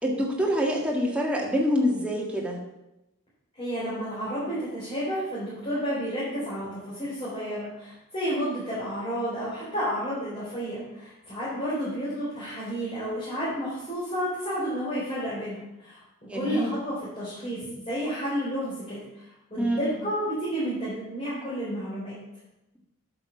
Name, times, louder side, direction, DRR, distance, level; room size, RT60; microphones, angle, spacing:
voice 1, 0.0-2.6 16.3-16.7 19.6-20.0, equal, 5° right, -1 dB, 1.7 m, -26 dB
voice 2, 3.5-16.0 16.3-22.2, equal, 25° left, -10 dB, 4.1 m, -31 dB
9.4 x 6.8 x 5.9 m, 0.92 s
head